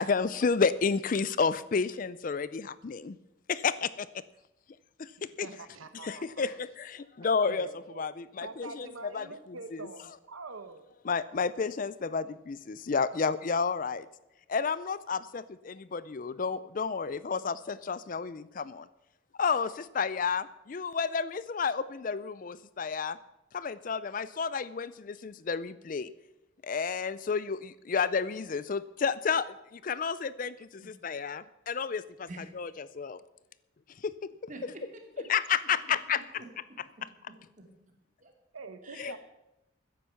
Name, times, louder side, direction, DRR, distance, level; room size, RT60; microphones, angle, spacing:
voice 1, 0.0-3.2 3.5-4.1 5.0-5.5 6.0-9.9 11.0-14.1 14.5-18.9 19.4-23.2 23.5-26.1 26.6-32.3 32.5-33.2 34.0-34.1 35.3-36.2 39.0-39.2, left 5 dB, 40° left, 16 dB, 0.4 m, -31 dB
voice 2, 5.2-6.6 7.2-8.1 8.4-10.8 38.5-39.2, right 3 dB, 85° right, 10 dB, 1.0 m, -45 dB
voice 3, 34.5-34.8 35.2-35.3 36.4-37.1 37.6-37.7 38.2-38.3 38.8-39.1, right 2 dB, 35° right, 3 dB, 2.4 m, -47 dB
14.5 x 10.0 x 5.8 m, 0.93 s
head